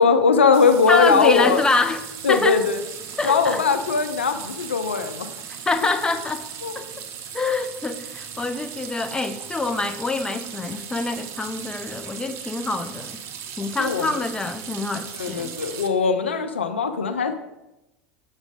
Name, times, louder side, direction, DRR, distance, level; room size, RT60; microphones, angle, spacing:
voice 1, 0.0-1.6 2.2-2.8 3.2-5.3 6.6-6.7 13.8-14.1 15.2-17.4, left 5 dB, 85° left, 9 dB, 0.5 m, -20 dB
sound 1, 0.5-15.9, right 8 dB, 50° right, 0.8 m, -37 dB
voice 2, 0.9-2.0 2.3-2.7 3.2-3.6 5.7-6.4 6.8-6.9 7.3-13.2 13.6-15.5, left 3 dB, 15° left, 8 dB, 0.6 m, -25 dB
7.2 x 5.1 x 3.6 m, 0.94 s
figure-of-eight pair, 75°, 6 cm